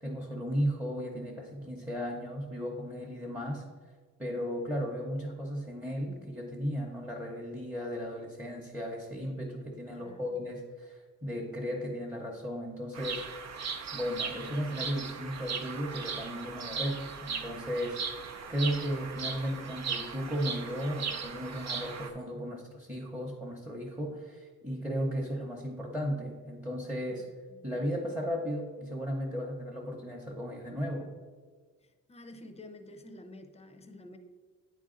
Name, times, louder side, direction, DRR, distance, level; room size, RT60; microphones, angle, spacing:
voice 1, 0.0-3.7 4.2-18.0 18.5-27.3 27.6-31.1, equal, 5° right, -2 dB, 0.8 m, -35 dB
voice 2, 9.9-10.4 27.1-27.6 31.8-34.2, left 1 dB, 20° left, 7 dB, 0.6 m, -50 dB
Bird vocalization bird call bird song, 12.9-22.1, right 5 dB, 60° right, 0.7 m, -38 dB
9.3 x 3.9 x 3.8 m, 1.5 s
wide cardioid pair, 140°, 31 cm